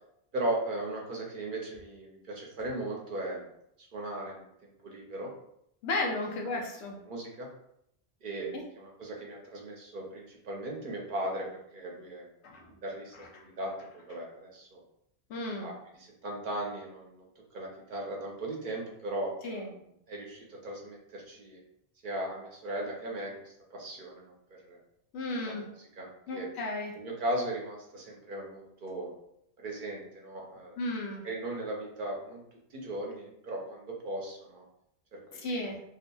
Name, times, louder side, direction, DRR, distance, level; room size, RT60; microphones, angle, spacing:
voice 1, 0.3-3.5 3.9-5.3 6.5-6.6 7.1-7.5 8.2-11.5 11.7-12.3 12.8-14.8 15.6-15.7 16.0-17.2 17.5-19.8 20.1-21.6 22.0-24.3 24.7-24.8 25.4-26.5 27.0-29.1 29.6-30.8 31.2-32.4 32.7-34.6 35.1-35.4, right 1 dB, 55° right, -1 dB, 0.7 m, -37 dB
voice 2, 5.8-7.0 8.5-8.6 12.4-12.7 13.1-13.4 15.3-15.7 19.4-19.7 25.1-25.6 26.3-26.9 30.8-31.2 35.3-35.8, left 2 dB, 90° left, 0 dB, 0.9 m, -34 dB
2.7 x 2.4 x 2.2 m, 0.76 s
omnidirectional pair, 1.1 m